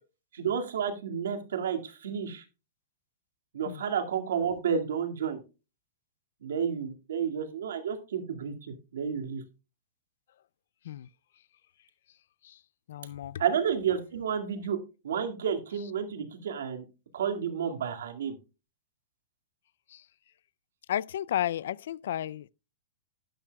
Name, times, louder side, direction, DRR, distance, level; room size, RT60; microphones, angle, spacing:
voice 1, 0.3-2.4 3.5-5.4 6.4-9.4 13.4-14.8 15.0-16.8 17.1-18.4, right 7 dB, 80° right, 2.1 m, -31 dB
voice 2, 12.9-13.4 19.9-20.0 20.9-22.5, left 11 dB, 70° left, 0.4 m, -33 dB
12.0 x 10.5 x 2.3 m
hypercardioid pair, 145°, 0 cm